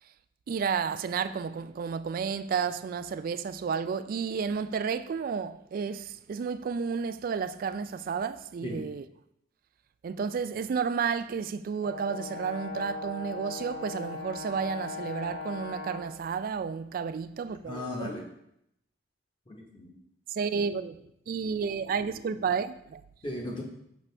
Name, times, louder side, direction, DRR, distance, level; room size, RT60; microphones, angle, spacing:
voice 1, 0.5-9.0 10.0-18.1 20.3-23.0, right 6 dB, 50° right, 0.3 m, -32 dB
Brass instrument, 11.8-16.2, left 3 dB, 75° left, 1.5 m, -39 dB
voice 2, 17.7-18.2 19.5-19.9 23.2-23.6, left 1 dB, 25° left, 0.9 m, -36 dB
6.1 x 6.0 x 3.3 m
head